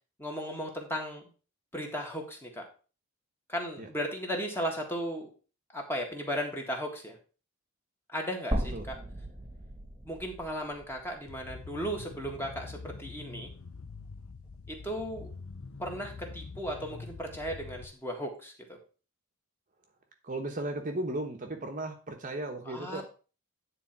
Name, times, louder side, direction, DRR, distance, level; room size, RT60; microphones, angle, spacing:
voice 1, 0.2-1.2 1.7-2.6 3.5-5.3 5.7-7.2 8.1-9.0 10.0-13.5 14.7-15.3 15.8-18.8 22.7-23.0, equal, 10° left, 1 dB, 1.8 m, -36 dB
sound 1, 8.5-12.7 13.0-13.1 14.5-14.6, right 1 dB, 15° right, 1.5 m, -37 dB
sound 2, 11.3-17.8, left 4 dB, 65° left, 0.7 m, -45 dB
voice 2, 20.2-23.0, right 1 dB, 35° right, 4 dB, 1.1 m, -35 dB
9.8 x 4.0 x 5.9 m, 0.36 s
head